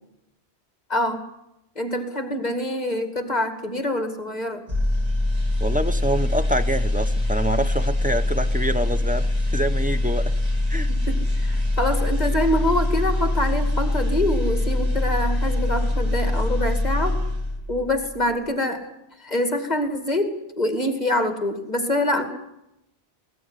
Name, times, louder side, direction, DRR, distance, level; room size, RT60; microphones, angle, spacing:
voice 1, 0.9-1.2 1.8-4.6 10.9-17.2 17.7-18.8 19.2-22.2, left 1 dB, 40° left, 6 dB, 2.6 m, -25 dB
sound 1, 4.7-17.8 18.1-18.4, left 1 dB, 35° right, 3.2 m, -23 dB
voice 2, 5.6-10.3 10.7-10.9, right 1 dB, 10° right, 8 dB, 1.0 m, -26 dB
20.5 x 18.0 x 9.9 m, 0.87 s
omnidirectional pair, 1.1 m